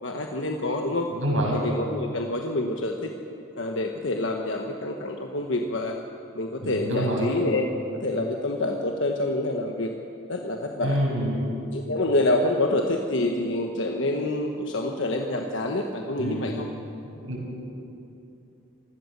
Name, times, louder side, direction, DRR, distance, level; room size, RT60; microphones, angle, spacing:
voice 1, 0.0-1.1 1.5-3.1 3.6-6.0 6.3-7.7 7.9-9.9 10.3-11.0 11.7-16.7, left 2 dB, 65° left, 2 dB, 1.3 m, -27 dB
voice 2, 1.1-1.6 6.6-7.3 10.8-11.4 16.2-16.5 17.2-17.6, equal, 75° right, -2 dB, 7.1 m, -27 dB
26.5 x 16.5 x 6.8 m, 2.7 s
head